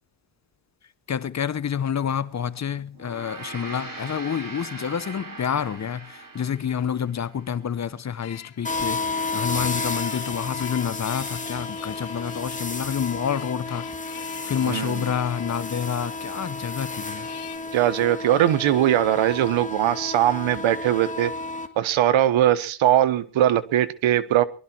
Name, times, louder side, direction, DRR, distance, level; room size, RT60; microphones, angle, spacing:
voice 1, 1.1-13.9 14.4-17.3, left 8 dB, 35° left, 0.9 m, -28 dB
Gong, 2.9-7.5, right 3 dB, 45° right, 7.0 m, -40 dB
sound 1, 8.2-17.6, left 13 dB, 90° left, 2.7 m, -45 dB
sound 2, 8.6-21.7, left 3 dB, 15° left, 1.8 m, -32 dB
voice 2, 14.6-15.1 17.7-21.3 21.8-24.4, right 12 dB, 75° right, 1.3 m, -21 dB
22.5 x 12.0 x 4.6 m
cardioid pair, 95°, 48 cm